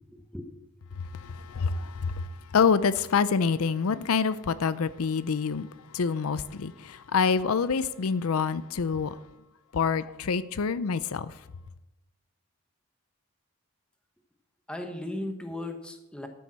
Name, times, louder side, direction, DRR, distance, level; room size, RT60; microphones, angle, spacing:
voice 1, 0.1-0.5 0.9-1.0 14.7-16.3, left 1 dB, 5° left, 1.1 m, -37 dB
voice 2, 1.0-5.7 5.9-9.2 9.7-11.4, left 5 dB, 85° left, 0.5 m, -27 dB
12.5 x 7.1 x 6.2 m
head